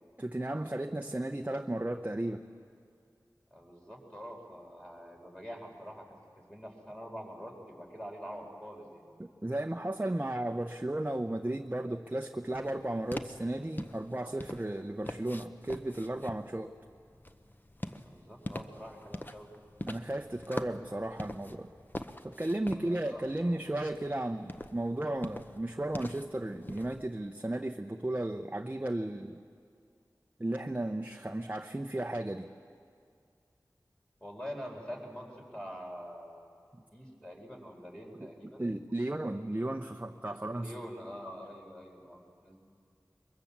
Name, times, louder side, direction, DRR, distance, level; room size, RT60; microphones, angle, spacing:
voice 1, 0.2-2.5 9.2-16.7 19.9-21.7 22.2-29.4 30.4-32.5 36.7-36.8 38.6-40.7, right 1 dB, 25° right, 4 dB, 0.8 m, -34 dB
voice 2, 3.5-9.1 18.0-19.5 22.7-23.9 34.2-36.5 36.9-38.7 40.5-42.6, equal, 10° left, -1 dB, 4.6 m, -45 dB
sound 1, 12.3-27.2, left 1 dB, 25° left, 0.9 m, -44 dB
22.5 x 22.0 x 7.4 m, 2.3 s
wide cardioid pair, 50°, 7 cm